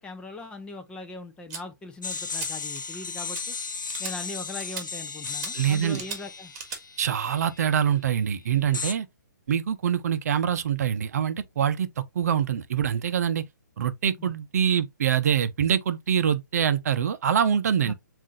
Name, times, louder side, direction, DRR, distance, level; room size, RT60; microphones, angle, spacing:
voice 1, 0.0-3.6 4.0-6.5 14.2-14.3 17.8-17.9, left 2 dB, 10° left, 0.5 m, -40 dB
sound 1, 1.5-1.6 2.1-2.5 2.7-3.0 3.3-3.4 3.9-4.1 4.6-4.8 5.3-5.5 5.9-6.2 6.5-6.8, right 5 dB, 30° right, 1.7 m, -37 dB
sound 2, 2.0-7.7 8.7-8.9, left 5 dB, 80° left, 0.7 m, -35 dB
voice 2, 5.5-6.0 7.0-9.1 9.5-11.9 12.1-13.4 13.8-17.9, right 8 dB, 55° right, 0.6 m, -24 dB
7.2 x 2.6 x 2.5 m
hypercardioid pair, 135°, 10 cm